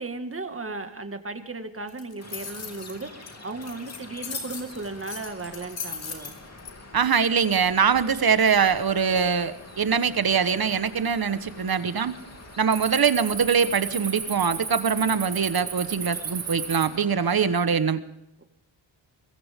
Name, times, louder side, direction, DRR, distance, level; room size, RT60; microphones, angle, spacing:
voice 1, 0.0-6.4 11.6-11.9 18.4-18.5, right 3 dB, 25° right, 7 dB, 2.0 m, -36 dB
sound 1, 1.9-6.7, left 5 dB, 65° left, 3.8 m, -37 dB
sound 2, 2.2-17.5, left 2 dB, 30° left, 2.7 m, -46 dB
voice 2, 6.9-12.1 12.6-18.0, right 6 dB, 50° right, 13 dB, 1.3 m, -23 dB
Cricket, 7.9-8.3 8.8-9.2 9.8-9.9 10.5-11.1 11.4-11.7 12.0-16.9, right 6 dB, 80° right, 3.7 m, -34 dB
21.5 x 15.5 x 3.7 m, 0.88 s
cardioid pair, 75°, 48 cm